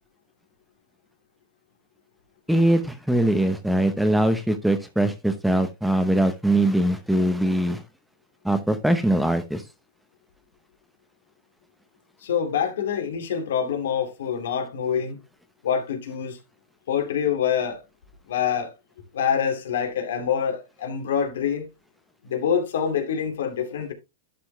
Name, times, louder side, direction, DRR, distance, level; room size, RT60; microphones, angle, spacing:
voice 1, 2.5-7.8 8.4-9.6, right 1 dB, ahead, 0.8 m, -22 dB
voice 2, 12.2-15.2 15.6-16.4 16.9-17.8 18.3-18.7 19.1-21.7 22.2-23.9, left 8 dB, 80° left, 2.3 m, -25 dB
11.5 x 4.4 x 3.3 m
hypercardioid pair, 140°, 0 cm